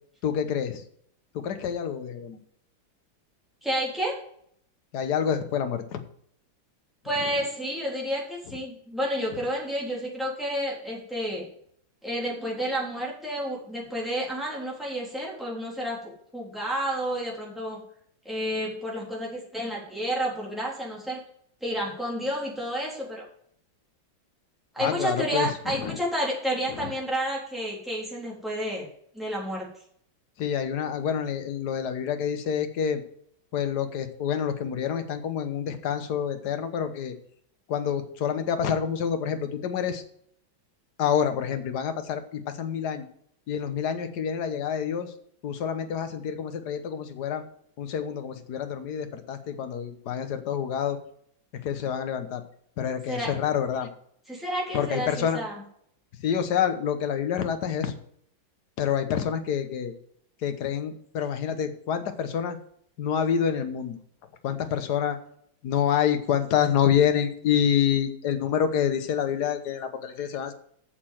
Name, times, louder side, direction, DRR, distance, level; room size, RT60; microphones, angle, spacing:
voice 1, 0.2-0.8 1.3-2.4 4.9-6.0 24.8-26.0 26.7-26.9 30.4-33.0 33.5-37.1 37.7-40.0 41.0-43.1 43.5-45.1 45.4-47.4 47.8-51.0 51.6-52.4 52.8-53.9 54.7-55.4 56.2-57.9 58.8-59.9 60.4-62.6 63.0-64.0 64.4-65.2 65.6-70.5, left 8 dB, 60° left, 8 dB, 1.6 m, -27 dB
voice 2, 3.6-4.2 7.0-11.5 12.0-17.8 18.2-21.2 21.6-23.2 24.7-28.9 29.1-29.7 53.1-53.3 54.3-55.6, equal, ahead, -5 dB, 3.7 m, -30 dB
8.7 x 6.8 x 7.8 m, 0.67 s
omnidirectional pair, 2.1 m